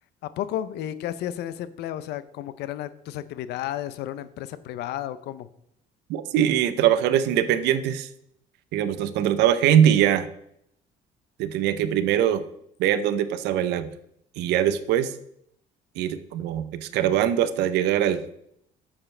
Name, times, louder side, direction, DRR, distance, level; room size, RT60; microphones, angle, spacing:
voice 1, 0.2-5.5, left 12 dB, 80° left, 14 dB, 0.6 m, -32 dB
voice 2, 6.1-8.1 8.7-10.3 11.4-12.4 12.8-13.9 14.4-15.1 16.0-18.2, right 10 dB, 90° right, 12 dB, 0.7 m, -22 dB
8.8 x 7.3 x 3.3 m, 0.74 s
cardioid pair, 110°, 17 cm